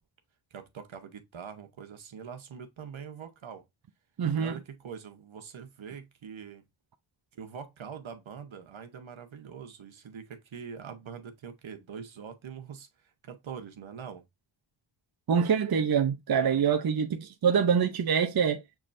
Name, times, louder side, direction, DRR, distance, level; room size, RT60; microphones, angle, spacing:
voice 1, 0.5-3.6 4.4-6.6 7.3-12.9 13.2-14.2, right 7 dB, 70° right, 1.1 m, -43 dB
voice 2, 4.2-4.6 15.3-18.6, right 7 dB, 50° right, 0.7 m, -25 dB
6.0 x 3.2 x 2.6 m
cardioid pair, 50°, 49 cm